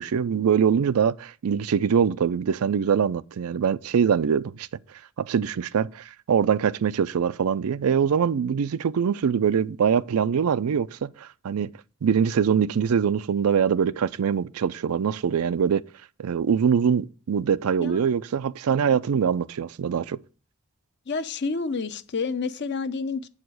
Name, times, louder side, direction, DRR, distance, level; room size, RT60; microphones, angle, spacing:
voice 1, 0.0-4.7 5.2-11.7 12.0-15.8 16.2-20.2, right 7 dB, 85° right, 0.4 m, -23 dB
voice 2, 21.1-23.3, left 4 dB, 50° left, 0.6 m, -29 dB
8.1 x 4.9 x 6.1 m
head